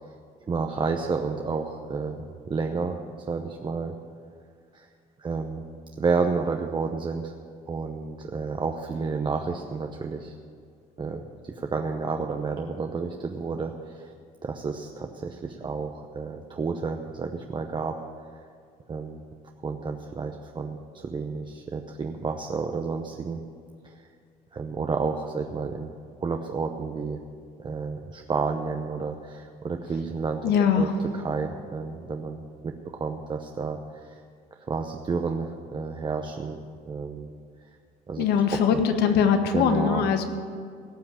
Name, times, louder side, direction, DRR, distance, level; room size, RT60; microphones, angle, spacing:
voice 1, 0.5-3.0 3.3-3.9 4.7-4.9 5.2-5.7 6.0-7.3 7.6-10.3 11.0-14.1 14.4-18.0 18.9-19.2 19.6-23.4 23.8-24.1 24.5-25.9 26.2-27.2 27.6-30.5 30.8-34.2 34.7-36.6 36.9-37.3 38.1-38.8 39.5-40.1, right 4 dB, 30° right, 4 dB, 0.8 m, -31 dB
voice 2, 30.4-30.9 38.2-40.2, left 7 dB, 75° left, 7 dB, 1.4 m, -21 dB
17.0 x 5.9 x 9.0 m, 2.2 s
cardioid pair, 110°, 17 cm